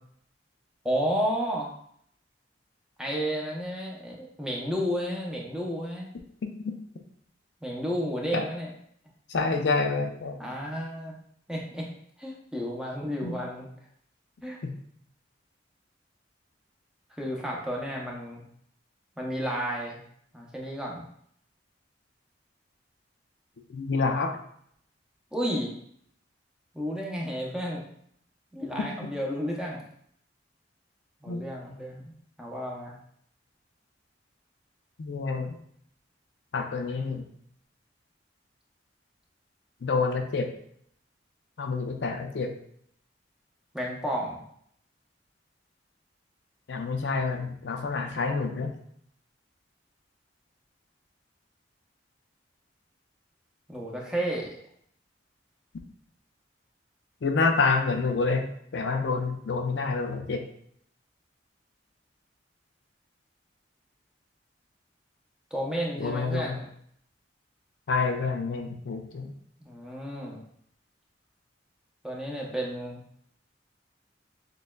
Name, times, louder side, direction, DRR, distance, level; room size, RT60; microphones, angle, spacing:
voice 1, 0.8-1.7 3.0-6.1 7.6-8.7 10.4-11.1 11.5-11.9 12.2-13.7 14.4-14.6 17.2-18.4 19.2-20.0 20.3-21.0 25.3-25.7 26.7-27.8 28.5-29.8 31.2-32.9 43.7-44.4 53.7-54.6 65.5-66.7 69.6-70.4 72.0-73.0, equal, 5° right, -3 dB, 0.6 m, -32 dB
voice 2, 9.3-10.4 13.2-13.4 14.6-14.7 23.7-24.4 29.0-29.1 31.3-31.4 35.0-35.6 36.5-37.2 39.8-40.5 41.6-42.5 46.7-48.7 57.2-58.5 58.7-60.4 66.0-66.5 67.9-69.3, left 4 dB, 70° left, 4 dB, 0.5 m, -28 dB
6.4 x 2.3 x 2.2 m, 0.67 s
head